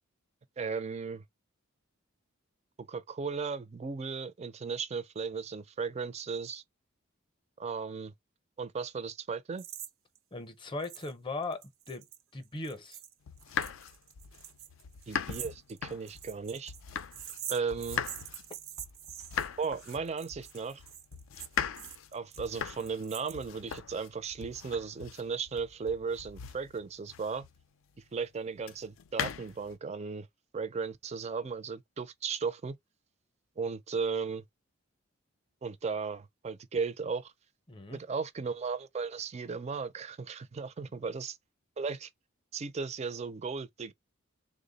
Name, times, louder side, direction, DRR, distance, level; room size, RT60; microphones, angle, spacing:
voice 1, 0.6-1.2 2.9-6.6 7.6-8.1 8.6-9.6 15.1-16.7 17.5-18.0 19.6-20.8 22.1-27.5 28.1-30.3 30.5-32.8 33.6-34.4 35.6-37.3 37.9-41.4 41.8-42.1 42.5-43.9, right 5 dB, 30° right, 0.4 m, -36 dB
sound 1, 9.6-9.9 10.2-10.3 10.8-11.1 11.4-23.8, right 11 dB, 75° right, 0.6 m, -45 dB
voice 2, 10.3-13.0 37.7-38.0, left 2 dB, 25° left, 0.6 m, -39 dB
sound 2, 13.3-17.4 17.7-27.6 28.6-29.8, left 8 dB, 70° left, 0.4 m, -39 dB
3.4 x 2.0 x 3.9 m
head